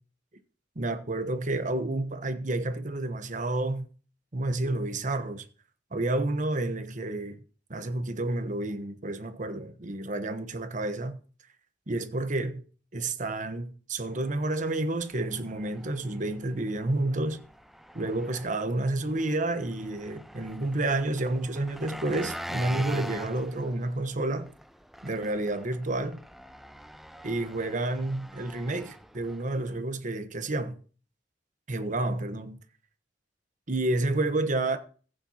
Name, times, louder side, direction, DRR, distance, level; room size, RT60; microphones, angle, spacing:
voice 1, 0.8-3.9 4.3-5.4 5.9-7.4 7.7-11.2 11.9-12.6 12.9-17.4 17.9-24.5 25.0-26.2 27.2-30.8 31.7-32.6 33.7-34.8, right 2 dB, 45° right, 1.2 m, -30 dB
Engine, 14.0-29.8, equal, ahead, 0.4 m, -45 dB
15.5 x 9.0 x 2.9 m
head